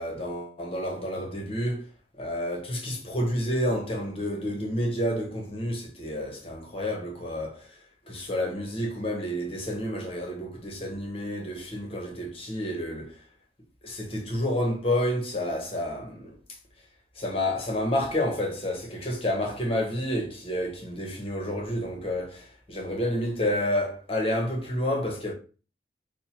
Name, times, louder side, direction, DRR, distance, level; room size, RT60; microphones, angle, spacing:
voice 1, 0.0-1.9 2.2-7.7 8.1-13.1 13.8-16.3 17.2-25.3, left 1 dB, 30° left, 0.9 m, -29 dB
5.3 x 2.1 x 2.9 m
head